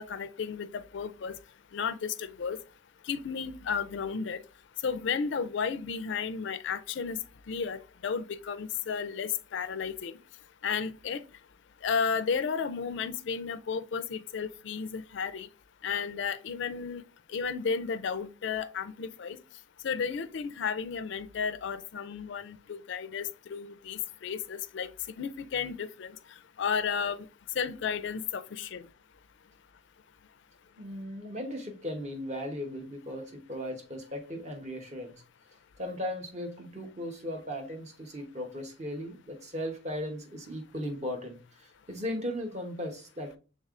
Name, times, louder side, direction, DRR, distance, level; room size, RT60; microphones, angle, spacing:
voice 1, 0.0-1.4 1.7-2.6 3.1-4.4 4.8-7.2 7.5-10.2 10.6-11.2 11.8-15.5 15.8-17.0 17.3-19.4 19.8-24.9 25.2-26.1 26.6-27.3 27.6-28.9, left 6 dB, 60° left, 0.4 m, -33 dB
voice 2, 30.8-35.2 35.8-43.4, equal, 35° right, 0.9 m, -37 dB
5.3 x 3.6 x 2.4 m
head